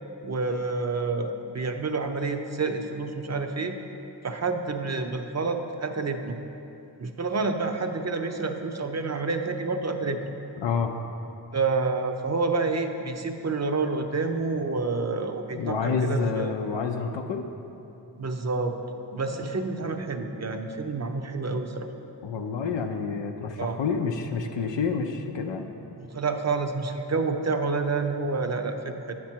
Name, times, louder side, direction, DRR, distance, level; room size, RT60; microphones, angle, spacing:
voice 1, 0.2-3.8 4.2-6.3 7.0-10.2 11.5-16.5 18.2-18.8 19.1-21.9 23.6-23.8 26.0-29.1, right 3 dB, 40° right, 6 dB, 0.6 m, -28 dB
voice 2, 10.6-10.9 15.5-17.5 22.2-25.7, left 5 dB, 90° left, 3 dB, 0.5 m, -28 dB
8.4 x 6.0 x 4.4 m, 2.9 s
wide cardioid pair, 55°, 43 cm